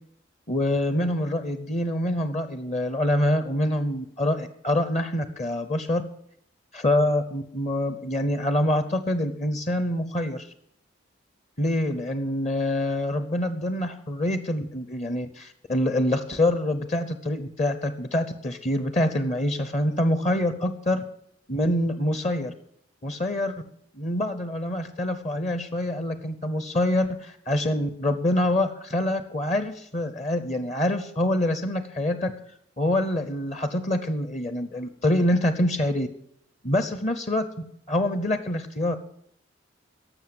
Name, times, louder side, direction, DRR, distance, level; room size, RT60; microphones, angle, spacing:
voice 1, 0.5-6.0 6.7-10.5 11.6-21.1 21.5-22.5 23.0-23.5 23.9-32.3 32.8-36.1 36.6-37.5 37.9-39.0, left 1 dB, 35° left, 11 dB, 0.8 m, -25 dB
12.0 x 7.2 x 9.4 m, 0.72 s
head